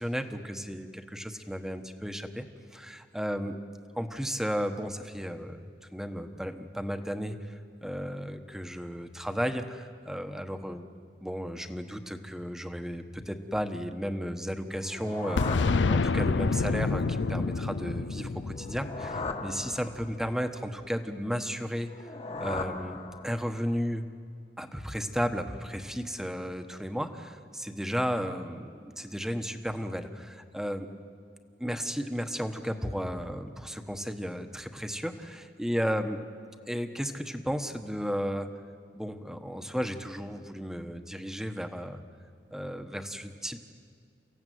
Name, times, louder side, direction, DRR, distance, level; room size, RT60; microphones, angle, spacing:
voice 1, 0.0-2.5 2.7-3.6 3.9-10.9 11.2-15.6 15.9-22.1 22.4-24.0 24.6-30.9 31.6-36.2 36.7-38.5 38.9-42.0 42.5-43.6, equal, 5° right, 7 dB, 1.2 m, -34 dB
sound 1, 14.7-16.6 18.5-20.3 21.8-23.7, left 3 dB, 35° left, 1.5 m, -38 dB
Boom, 15.4-20.0, left 4 dB, 70° left, 0.5 m, -28 dB
29.5 x 15.5 x 9.3 m, 2.2 s
head